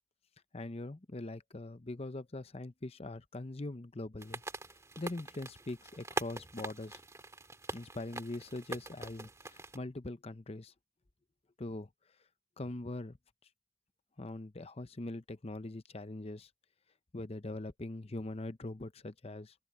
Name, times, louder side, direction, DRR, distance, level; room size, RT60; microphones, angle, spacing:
voice 1, 0.5-4.4 5.0-7.0 7.7-10.7 11.6-11.9 12.6-13.2 14.2-16.5 17.1-19.5, left 2 dB, 30° left, 0.8 m, -42 dB
sound 1, 4.2-9.8, right 2 dB, 15° right, 2.1 m, -43 dB
open air
head